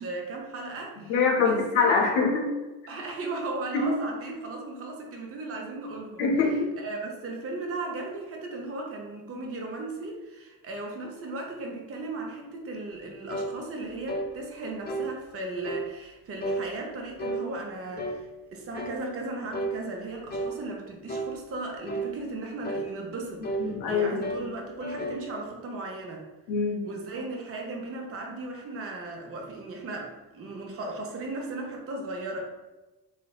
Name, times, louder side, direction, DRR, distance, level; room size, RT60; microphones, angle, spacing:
voice 1, 0.0-2.1 2.9-6.2 6.8-26.2 26.8-32.4, right 2 dB, 35° right, 0 dB, 0.6 m, -36 dB
voice 2, 1.1-2.5 3.7-3.9 6.2-6.7 23.6-24.5 26.5-26.9, left 4 dB, 90° left, -1 dB, 0.6 m, -24 dB
sound 1, 13.3-13.5 14.1-14.3 14.9-15.1 15.6-15.9 16.4-16.7 17.2-17.4 18.0-18.2 18.7-19.0 19.5-19.8 20.3-20.6 21.1-21.3 21.9-22.1 22.6-22.9 23.4-23.7 24.2-24.5 24.8-25.2, right 2 dB, 25° left, 0.3 m, -32 dB
3.2 x 2.1 x 2.3 m, 1.1 s
supercardioid pair, 65°, 41 cm